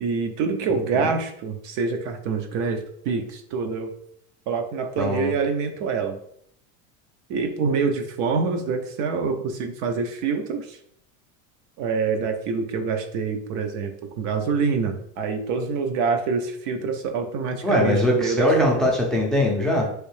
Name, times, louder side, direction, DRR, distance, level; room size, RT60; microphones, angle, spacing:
voice 1, 0.0-3.9 4.5-6.2 7.3-10.6 11.8-18.9, right 5 dB, 50° right, 6 dB, 0.6 m, -26 dB
voice 2, 5.0-5.3 17.6-19.9, left 1 dB, ahead, -1 dB, 0.4 m, -21 dB
3.1 x 2.6 x 3.2 m, 0.68 s
supercardioid pair, 140°, 37 cm